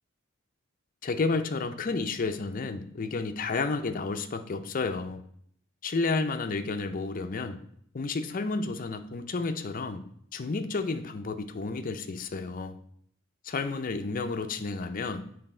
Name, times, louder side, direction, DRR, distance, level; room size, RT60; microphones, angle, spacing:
voice 1, 1.0-5.2 5.8-7.6 7.9-10.0 10.3-12.8 13.4-15.2, left 3 dB, 45° left, 7 dB, 0.5 m, -31 dB
9.0 x 3.4 x 4.3 m, 0.66 s
head